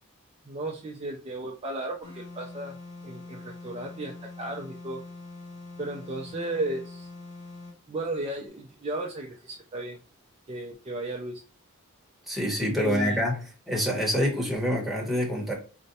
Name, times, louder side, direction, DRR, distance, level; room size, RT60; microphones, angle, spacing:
voice 1, 0.5-2.8 3.0-5.0 5.8-7.1 7.9-10.0 10.5-11.4 12.7-13.2, right 2 dB, 25° right, 0.4 m, -34 dB
sound 1, 2.0-7.8, left 3 dB, 65° left, 1.8 m, -44 dB
voice 2, 12.3-13.4 13.7-15.5, equal, ahead, 0.9 m, -26 dB
4.1 x 2.2 x 2.6 m
head